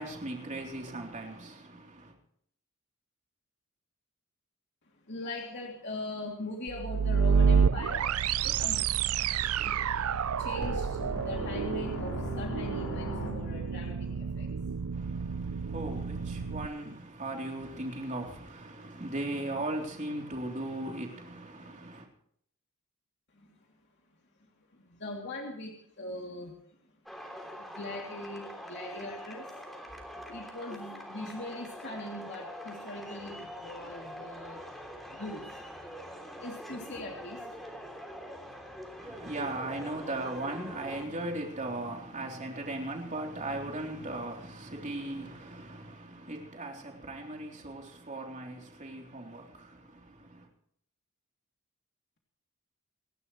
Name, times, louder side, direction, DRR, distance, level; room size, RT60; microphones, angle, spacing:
voice 1, 0.0-2.1 14.9-22.1 39.0-50.5, right 2 dB, 35° right, 3.5 m, -38 dB
voice 2, 5.1-8.0 8.3-8.8 9.6-9.8 10.4-14.5 23.3-23.5 24.7-26.8 27.5-29.5 30.3-34.6 35.1-35.6 36.4-37.5, left 2 dB, 50° left, 3.0 m, -41 dB
sound 1, 6.7-16.7, right 6 dB, 75° right, 0.5 m, -29 dB
sound 2, 10.6-13.9, left 1 dB, 80° left, 4.3 m, -38 dB
sound 3, 27.1-41.1, equal, ahead, 3.2 m, -44 dB
28.0 x 12.0 x 3.2 m
head